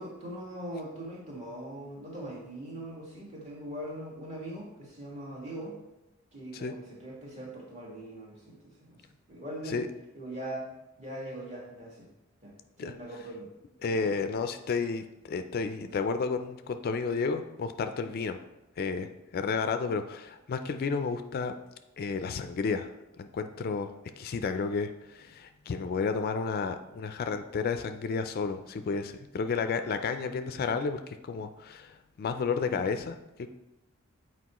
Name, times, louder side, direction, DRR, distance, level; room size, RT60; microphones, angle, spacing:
voice 1, 0.0-5.8 6.3-9.8 10.1-10.7 11.0-12.1 12.4-13.5 13.9-14.1, right 1 dB, 35° right, -3 dB, 1.7 m, -41 dB
voice 2, 13.8-18.4 18.8-21.6 22.0-22.9 23.2-33.5, left 5 dB, 45° left, 8 dB, 0.3 m, -32 dB
8.3 x 4.5 x 3.0 m, 0.95 s
head